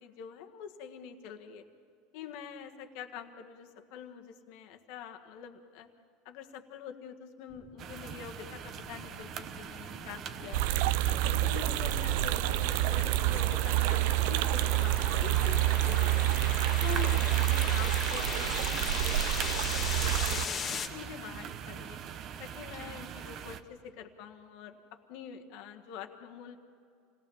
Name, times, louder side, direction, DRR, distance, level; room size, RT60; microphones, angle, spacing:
voice 1, 0.0-1.6 2.1-5.9 6.2-10.7 11.1-16.3 16.8-22.0 22.4-26.6, left 8 dB, 65° left, 5 dB, 1.6 m, -46 dB
sound 1, 7.5-20.9, left 6 dB, 30° left, 1.6 m, -40 dB
sound 2, 7.8-23.6, right 8 dB, 45° right, 1.0 m, -42 dB
sound 3, 10.5-20.5, right 16 dB, 70° right, 0.5 m, -28 dB
28.0 x 18.5 x 7.3 m, 2.5 s
supercardioid pair, 125°, 0 cm